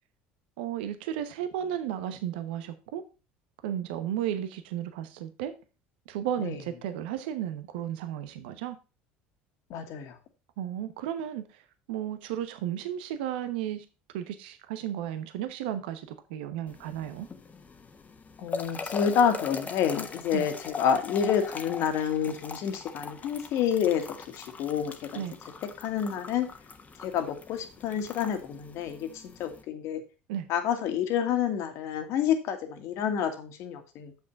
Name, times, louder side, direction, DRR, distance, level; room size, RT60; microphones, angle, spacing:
voice 1, 0.6-3.0 3.6-5.5 6.1-8.8 10.6-11.6 11.9-13.9 14.1-17.3 20.3-20.4 25.1-25.3 30.3-30.5, right 10 dB, 80° right, 1.0 m, -34 dB
voice 2, 9.7-10.2 18.4-25.2 25.8-26.5 27.0-30.0 30.5-34.1, left 8 dB, 65° left, 1.8 m, -28 dB
sound 1, 16.7-29.6, left 4 dB, 30° left, 1.3 m, -41 dB
7.5 x 5.9 x 5.2 m
hypercardioid pair, 80°, 5 cm